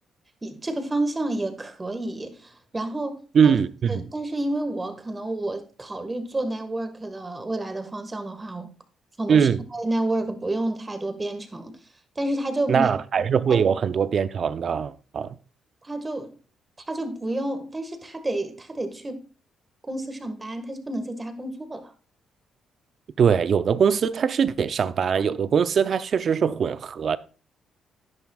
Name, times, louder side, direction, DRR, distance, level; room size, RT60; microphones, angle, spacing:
voice 1, 0.4-3.6 3.9-8.7 9.2-11.7 12.1-12.9 13.5-13.6 15.8-16.3 16.9-19.2 19.9-21.9, right 1 dB, 20° right, 1.6 m, -30 dB
voice 2, 3.3-4.1 9.3-9.6 12.7-15.4 23.2-27.2, right 7 dB, 55° right, 0.6 m, -22 dB
11.0 x 10.5 x 2.4 m
cardioid pair, 90°, 0 cm